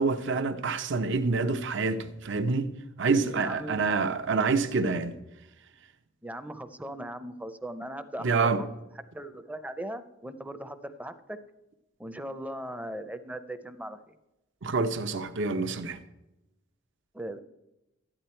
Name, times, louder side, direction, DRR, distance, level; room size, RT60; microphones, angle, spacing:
voice 1, 0.0-2.7 3.0-5.1 8.2-8.6 14.6-16.0, right 4 dB, 60° right, 0.7 m, -27 dB
voice 2, 3.3-3.8 6.2-8.7 9.1-11.4 12.0-14.2 17.1-17.4, right 1 dB, 5° right, 0.6 m, -39 dB
13.0 x 10.0 x 4.4 m
head